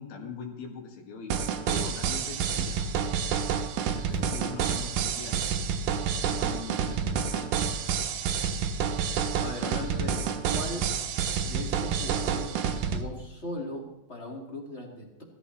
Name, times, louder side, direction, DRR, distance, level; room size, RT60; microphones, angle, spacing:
voice 1, 0.0-2.9 4.1-5.5 6.2-7.6, left 5 dB, 80° left, 1 dB, 3.9 m, -42 dB
sound 1, 1.3-13.0, right 7 dB, 70° right, 2.2 m, -29 dB
voice 2, 4.3-4.8 6.5-6.6 9.3-10.9 11.4-15.2, left 1 dB, 30° left, -1 dB, 1.2 m, -39 dB
17.5 x 14.5 x 3.2 m, 0.97 s
omnidirectional pair, 4.5 m